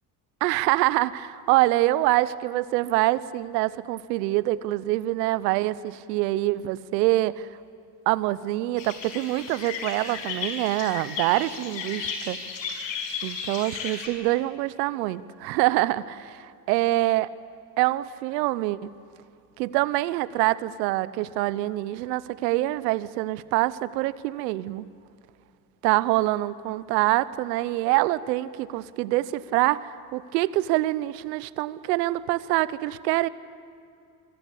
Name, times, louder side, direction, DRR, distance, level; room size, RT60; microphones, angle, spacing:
voice 1, 0.4-7.5 8.1-12.4 13.2-17.3 17.8-18.9 19.6-24.9 25.8-33.3, right 17 dB, 85° right, 18 dB, 0.9 m, -25 dB
sound 1, 8.8-14.1, left 6 dB, 65° left, 5.8 m, -34 dB
25.5 x 25.0 x 8.5 m, 2.5 s
hypercardioid pair, 60°, 49 cm